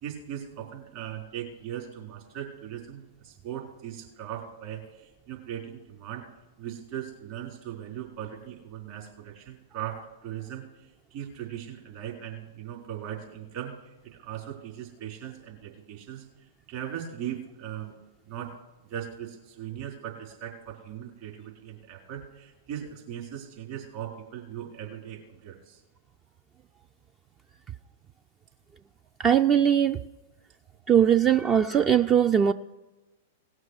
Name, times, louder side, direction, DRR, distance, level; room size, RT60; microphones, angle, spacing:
voice 1, 0.0-6.3 6.6-10.8 11.1-18.0 18.2-18.5 18.8-25.8, right 10 dB, 50° right, -1 dB, 4.0 m, -39 dB
voice 2, 29.2-30.0 30.9-32.5, right 9 dB, 25° right, 10 dB, 0.4 m, -20 dB
18.0 x 6.3 x 6.4 m, 1.1 s
hypercardioid pair, 105°, 0 cm